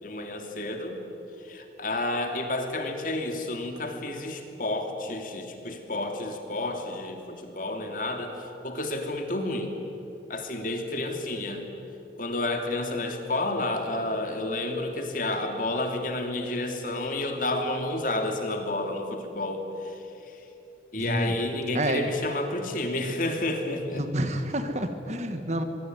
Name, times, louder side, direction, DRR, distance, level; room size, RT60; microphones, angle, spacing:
voice 1, 0.0-1.0 1.4-9.7 10.3-11.6 12.2-20.4 20.9-24.0, left 2 dB, 45° left, 4 dB, 2.9 m, -30 dB
voice 2, 20.9-21.4 21.7-22.1 23.9-25.6, right 1 dB, 40° right, 8 dB, 1.8 m, -29 dB
24.0 x 23.5 x 9.3 m, 2.9 s
head